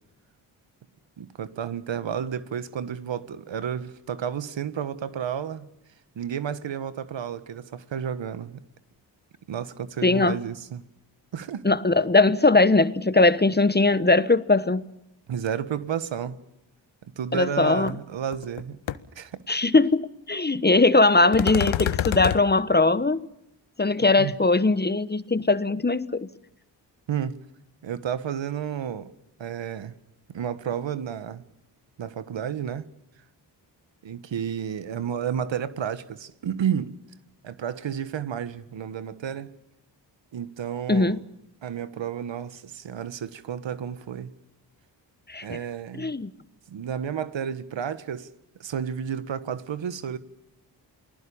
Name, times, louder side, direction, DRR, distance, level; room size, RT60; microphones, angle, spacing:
voice 1, 1.2-5.7 6.1-8.6 9.5-10.8 11.3-11.6 15.3-16.4 17.2-18.8 19.1-19.3 24.2-24.3 27.1-27.4 27.8-29.1 29.4-29.9 30.3-31.4 32.0-32.9 34.0-36.9 37.4-39.5 40.3-41.2 41.6-44.3 45.4-46.1 46.7-48.3 48.6-50.2, right 8 dB, 70° right, 1.6 m, -31 dB
voice 2, 10.0-10.4 11.6-14.8 17.3-17.9 19.5-23.2 23.8-26.3 40.9-41.2 45.3-45.6 45.9-46.3, left 3 dB, 20° left, 1.2 m, -20 dB
sound 1, 17.9-18.0 18.3-18.6 18.9-19.0 21.3-22.4, left 11 dB, 75° left, 1.2 m, -26 dB
29.0 x 20.0 x 7.1 m
cardioid pair, 50°, 46 cm